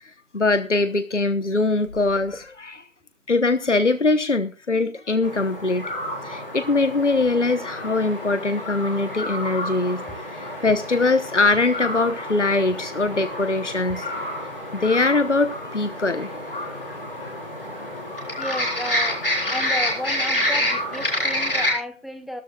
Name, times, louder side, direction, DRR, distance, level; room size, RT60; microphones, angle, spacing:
voice 1, 0.3-2.8 3.3-5.9 6.2-10.0 10.3-14.1 14.7-16.3 18.2-18.4, left 3 dB, 60° left, 11 dB, 1.1 m, -22 dB
sound 1, 5.2-21.7, left 1 dB, 45° left, 4.1 m, -29 dB
voice 2, 18.4-19.2 19.5-22.4, left 1 dB, ahead, 7 dB, 0.6 m, -33 dB
18.0 x 13.5 x 2.4 m, 0.28 s
figure-of-eight pair, 170°, 40 cm